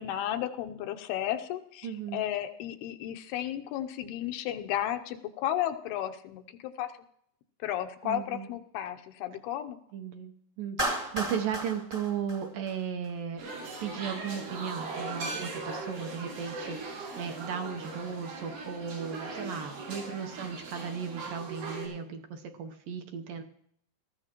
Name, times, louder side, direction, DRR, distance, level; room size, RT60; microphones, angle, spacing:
voice 1, 0.0-6.9 7.6-9.8, left 12 dB, 90° left, 7 dB, 2.8 m, -33 dB
voice 2, 1.8-2.3 8.0-8.5 9.9-13.5 13.8-23.4, right 7 dB, 75° right, 4 dB, 2.3 m, -36 dB
Clapping, 10.8-13.1, right 1 dB, 25° right, 0.8 m, -34 dB
sound 1, 13.4-21.9, right 3 dB, 90° right, 7.7 m, -39 dB
19.5 x 14.0 x 3.0 m, 0.70 s
omnidirectional pair, 4.4 m